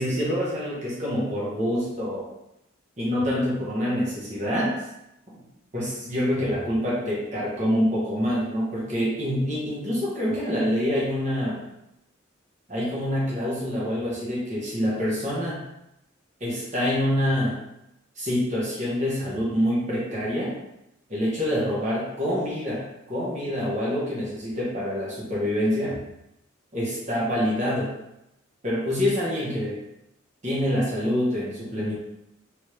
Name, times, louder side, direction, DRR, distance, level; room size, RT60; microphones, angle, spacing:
voice 1, 0.0-2.3 3.0-4.7 5.7-11.6 12.7-15.6 16.4-17.6 18.2-20.5 21.1-26.0 26.7-27.9 28.6-29.8 30.4-31.9, equal, 35° right, -7 dB, 1.1 m, -26 dB
3.3 x 3.0 x 3.2 m, 0.85 s
head